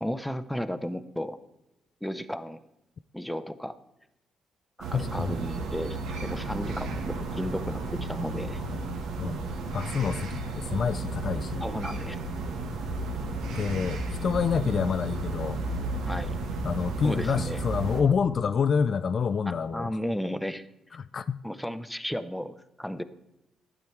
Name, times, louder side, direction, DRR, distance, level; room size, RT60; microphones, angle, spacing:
voice 1, 0.0-1.4 2.0-2.6 3.1-3.8 4.8-8.6 11.6-12.2 16.1-16.3 17.0-17.6 19.5-20.7 21.4-23.0, equal, 5° left, 0.7 m, -34 dB
sound 1, 4.8-18.0, right 2 dB, 85° right, 1.4 m, -33 dB
voice 2, 4.9-5.3 9.2-10.3 10.6-11.6 13.4-15.6 16.6-20.0 21.0-21.4, left 6 dB, 50° left, 0.3 m, -28 dB
11.5 x 9.0 x 4.6 m
cardioid pair, 90°, 0 cm